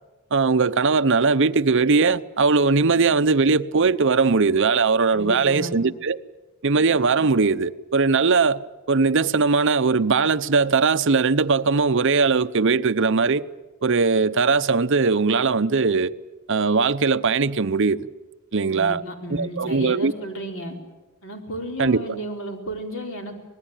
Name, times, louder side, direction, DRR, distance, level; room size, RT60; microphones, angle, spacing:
voice 1, 0.3-6.2 6.6-8.6 8.9-13.5 13.8-16.1 16.5-18.1 18.5-19.0 19.3-20.1 21.8-22.1, right 4 dB, 60° right, 0.8 m, -20 dB
voice 2, 5.1-5.8 18.7-20.7 21.2-23.4, right 1 dB, 60° left, 4.3 m, -33 dB
26.0 x 20.0 x 8.9 m
head